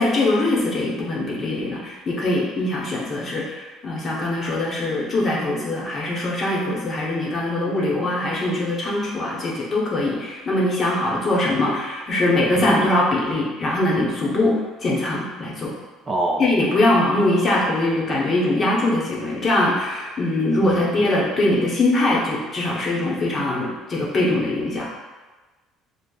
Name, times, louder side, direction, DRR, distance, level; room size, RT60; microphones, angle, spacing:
voice 1, 0.0-15.7 16.4-24.9, left 2 dB, 30° left, -4 dB, 0.8 m, -22 dB
voice 2, 12.5-13.0 16.1-16.5 20.6-21.1, right 2 dB, 20° right, -1 dB, 0.3 m, -25 dB
5.0 x 2.0 x 2.3 m, 1.3 s
cardioid pair, 135°, 0 cm